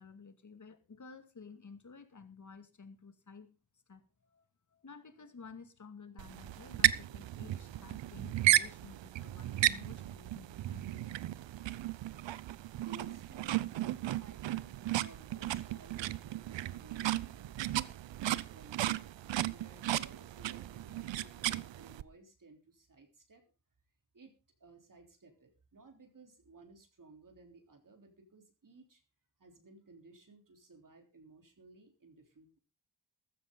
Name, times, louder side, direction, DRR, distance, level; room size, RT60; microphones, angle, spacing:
voice 1, 0.0-3.5 3.9-4.4 4.7-11.2, left 5 dB, 40° left, 10 dB, 2.3 m, -53 dB
sound 1, 6.2-22.0, right 14 dB, 75° right, 0.8 m, -34 dB
voice 2, 12.8-13.7 14.2-17.8 18.2-23.4 24.1-24.3 24.6-29.0 29.4-32.6, right 3 dB, 45° right, 3 dB, 3.7 m, -58 dB
15.0 x 12.5 x 3.9 m, 0.31 s
cardioid pair, 60°, 45 cm